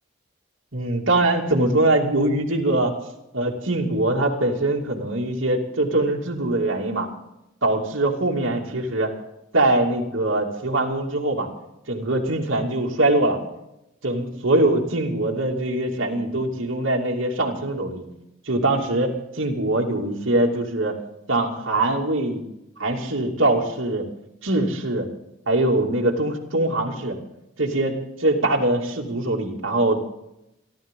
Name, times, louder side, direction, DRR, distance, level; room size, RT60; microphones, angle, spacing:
voice 1, 0.7-2.9 3.3-7.1 7.6-9.1 9.5-11.5 11.9-13.4 14.0-18.0 18.5-21.0 21.3-22.4 22.8-24.1 24.4-25.1 25.5-27.2 27.6-30.0, right 2 dB, 70° right, -1 dB, 2.5 m, -22 dB
27.5 x 12.0 x 3.7 m, 0.87 s
head